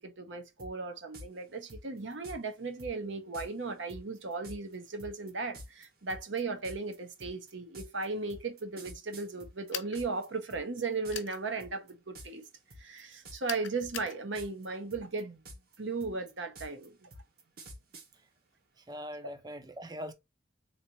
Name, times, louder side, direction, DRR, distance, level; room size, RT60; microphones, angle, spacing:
voice 1, 0.0-12.4 12.8-15.4 15.8-17.1, right 3 dB, 75° right, 1.0 m, -36 dB
sound 1, 0.6-0.7 1.1-1.3 1.7-2.4 2.8-2.9 3.3-3.5 3.9-10.3 10.5-11.4 11.6-11.9 12.2-12.5 12.7-13.6 13.8-14.7 14.9-18.1, equal, 50° right, 1.2 m, -48 dB
sound 2, 9.7-10.0 11.1-11.4 13.5-14.2, left 10 dB, 85° left, 0.9 m, -39 dB
voice 2, 18.9-20.1, equal, 20° right, 0.5 m, -41 dB
4.0 x 3.1 x 2.8 m
head